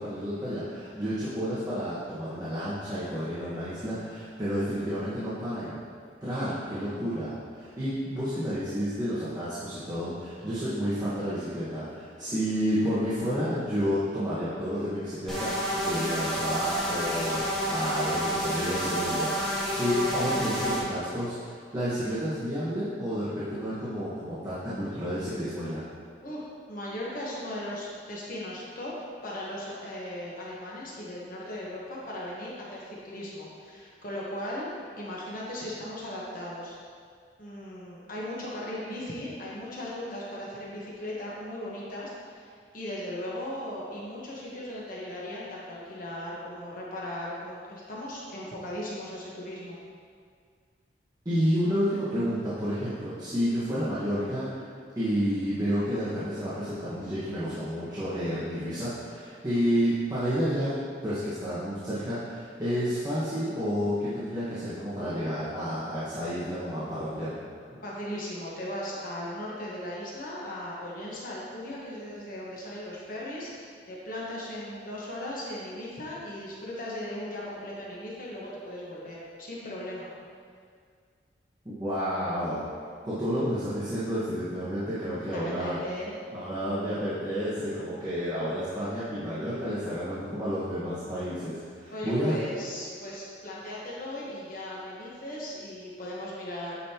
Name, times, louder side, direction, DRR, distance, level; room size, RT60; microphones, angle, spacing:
voice 1, 0.0-5.8 6.2-25.8 51.2-54.7 54.9-60.7 61.0-67.4 81.6-82.7 83.0-85.8 86.3-92.3, equal, 20° right, -13 dB, 1.5 m, -30 dB
sound 1, 15.3-20.8, equal, 5° left, 1.4 m, -29 dB
voice 2, 26.2-28.9 29.2-34.7 35.0-36.8 37.4-49.8 67.8-80.1 85.3-86.2 91.9-96.7, left 1 dB, 50° left, -5 dB, 1.2 m, -37 dB
9.4 x 5.4 x 2.9 m, 2.1 s
head